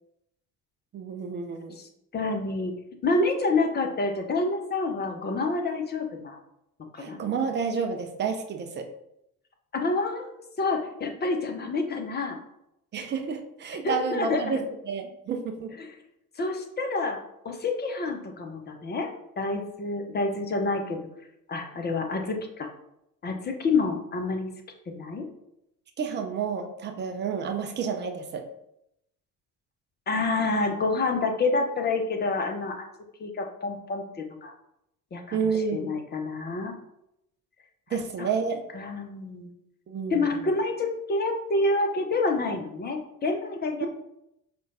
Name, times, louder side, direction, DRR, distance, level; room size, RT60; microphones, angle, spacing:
voice 1, 0.9-1.8 7.0-8.9 12.9-14.6 14.9-15.7 26.0-28.4 35.3-36.0 37.9-38.6 39.9-40.3 43.8-43.9, right 5 dB, 25° right, 4 dB, 0.4 m, -30 dB
voice 2, 1.8-2.8 3.0-6.4 6.8-7.2 9.7-10.3 10.6-12.4 13.8-14.6 15.8-15.9 16.4-17.2 17.4-21.0 21.5-22.7 23.2-24.5 24.9-25.3 30.1-32.8 33.2-34.5 35.1-36.7 38.2-38.3 38.7-39.5 40.1-43.9, left 3 dB, 25° left, 4 dB, 0.6 m, -28 dB
5.0 x 2.2 x 2.5 m, 0.80 s
figure-of-eight pair, 55°, 45 cm